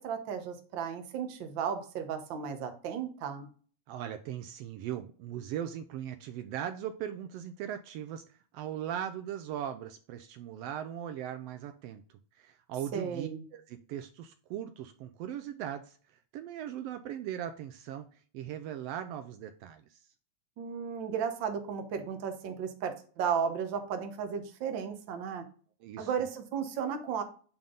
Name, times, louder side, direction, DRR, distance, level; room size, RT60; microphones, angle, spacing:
voice 1, 0.0-3.5 12.9-13.4 20.6-25.4 26.0-27.2, right 7 dB, 60° right, 6 dB, 1.3 m, -34 dB
voice 2, 3.9-8.2 8.5-12.0 12.4-16.0 16.3-18.1 18.3-20.0 25.8-26.1, right 10 dB, 90° right, 9 dB, 1.4 m, -39 dB
8.9 x 3.6 x 3.8 m, 0.42 s
omnidirectional pair, 3.3 m